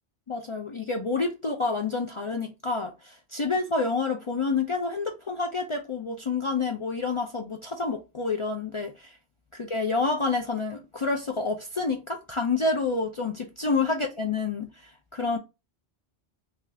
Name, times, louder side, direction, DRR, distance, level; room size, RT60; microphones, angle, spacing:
voice 1, 0.3-9.2 9.5-15.4, left 4 dB, 50° left, 0.3 m, -28 dB
3.8 x 2.3 x 3.2 m
omnidirectional pair, 1.1 m